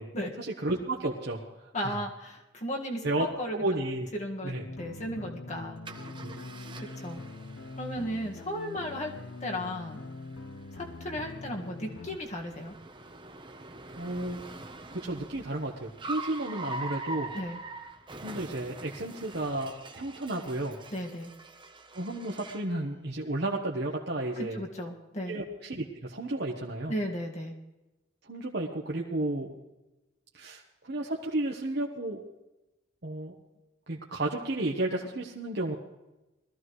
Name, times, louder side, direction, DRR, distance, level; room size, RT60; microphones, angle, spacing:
voice 1, 0.4-1.4 1.8-2.0 3.0-3.2 3.5-4.1 4.4-4.6 6.2-6.4 14.0-14.4 14.9-17.3 18.2-20.8 21.9-24.6 25.3-26.9 28.2-29.5 30.3-32.2 33.0-33.3 33.9-35.8, right 2 dB, 55° right, -2 dB, 1.2 m, -32 dB
voice 2, 1.7-3.6 4.1-5.8 6.8-7.2 7.8-9.1 9.4-10.0 10.7-12.7 17.3-17.6 20.9-21.3 24.4-25.4 26.9-27.5, equal, 35° left, 1 dB, 1.8 m, -35 dB
sound 1, 4.6-12.2, left 3 dB, 80° left, 0.8 m, -43 dB
Car, 5.8-22.7, right 2 dB, 25° right, 1.0 m, -44 dB
21.0 x 14.5 x 3.2 m, 1.0 s
head